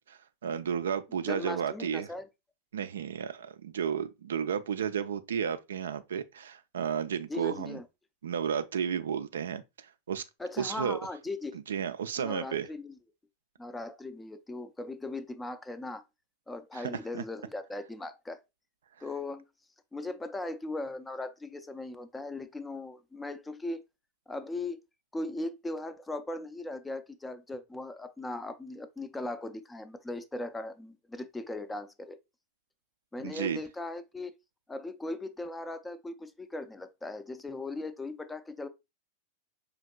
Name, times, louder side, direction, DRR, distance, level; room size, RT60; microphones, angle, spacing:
voice 1, 0.1-2.1 2.7-7.8 8.2-9.6 10.1-10.2 10.6-11.0 11.7-12.7 16.7-17.2 33.2-33.6, right 8 dB, 65° right, 0.3 m, -32 dB
voice 2, 1.3-2.3 7.3-7.8 10.4-11.6 12.2-12.9 13.6-16.0 16.5-18.4 19.0-19.4 19.9-23.8 24.3-24.8 25.1-32.2 33.1-34.3 34.7-38.7, left 2 dB, 10° left, 0.4 m, -38 dB
5.0 x 2.8 x 2.3 m
figure-of-eight pair, 90°, 0 cm